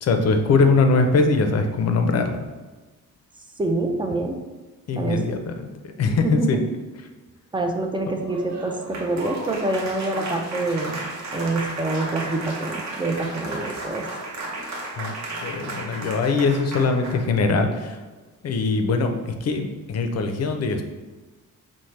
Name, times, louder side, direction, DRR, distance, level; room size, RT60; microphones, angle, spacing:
voice 1, 0.0-2.5 4.9-5.7 6.0-6.6 15.0-15.1 15.4-18.0 18.4-20.8, left 4 dB, 50° left, 6 dB, 0.5 m, -21 dB
voice 2, 3.6-4.4 4.9-5.3 6.1-6.6 7.5-11.0 11.3-14.1, right 2 dB, 15° right, 3 dB, 0.3 m, -26 dB
Applause, 8.1-17.3, right 2 dB, 60° right, 0.8 m, -34 dB
5.6 x 2.1 x 3.2 m, 1.2 s
cardioid pair, 130°, 32 cm